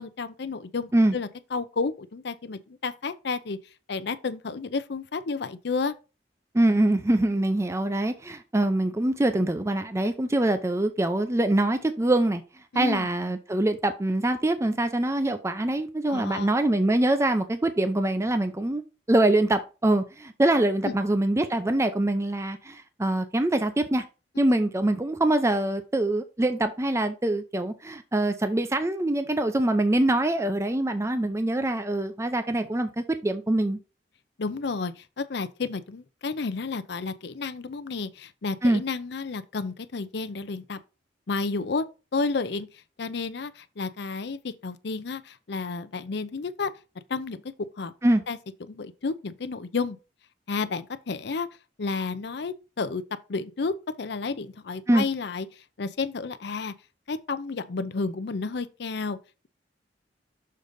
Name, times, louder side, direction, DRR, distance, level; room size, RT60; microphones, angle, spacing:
voice 1, 0.0-3.6 3.9-5.9 12.7-13.1 16.1-16.5 20.8-21.0 24.5-24.6 34.4-40.8 41.3-41.8 42.1-42.7 43.0-46.7 47.1-47.4 47.8-47.9 48.3-48.4 48.7-50.0 50.5-51.5 51.8-53.0 53.3-56.7 57.1-59.2, left 4 dB, 65° left, 0.6 m, -31 dB
voice 2, 6.5-12.4 12.7-18.8 19.1-24.0 24.4-33.8 38.6-38.8 48.0-48.2 54.9-55.0, right 1 dB, 15° right, 0.5 m, -24 dB
6.6 x 3.8 x 5.1 m
head